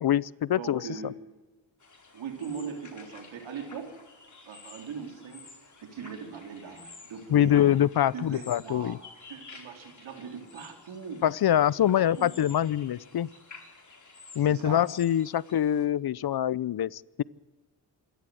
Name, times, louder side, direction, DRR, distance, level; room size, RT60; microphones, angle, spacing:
voice 1, 0.0-0.8 7.3-9.0 11.2-13.3 14.4-17.2, left 11 dB, 55° left, 22 dB, 0.6 m, -24 dB
voice 2, 0.5-1.1 2.1-4.0 4.5-5.5 5.8-7.8 8.1-9.0 9.3-11.2 11.9-12.3 14.5-14.8, right 6 dB, 85° right, 4 dB, 3.8 m, -40 dB
sound 1, 1.8-15.8, left 4 dB, 40° left, 4.9 m, -51 dB
26.5 x 12.5 x 7.8 m, 1.2 s
cardioid pair, 70°, 45 cm